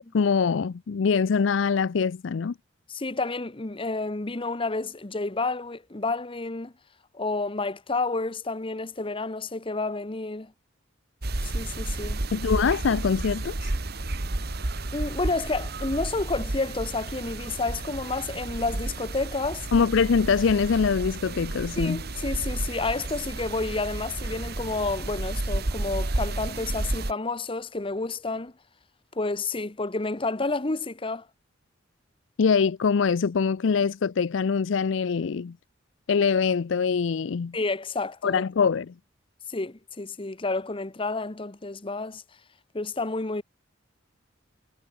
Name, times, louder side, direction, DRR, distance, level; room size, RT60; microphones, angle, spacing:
voice 1, 0.1-2.5 12.3-13.7 19.7-22.0 32.4-35.6 36.1-37.6 38.2-38.9, left 5 dB, 70° left, 0.4 m, -23 dB
voice 2, 2.9-6.7 7.1-10.5 11.4-12.2 14.9-19.7 21.8-28.5 29.1-31.3 37.5-38.4 39.5-42.2 42.7-43.4, left 3 dB, 25° left, 1.0 m, -30 dB
sound 1, 11.2-27.1, right 2 dB, 55° right, 1.5 m, -32 dB
head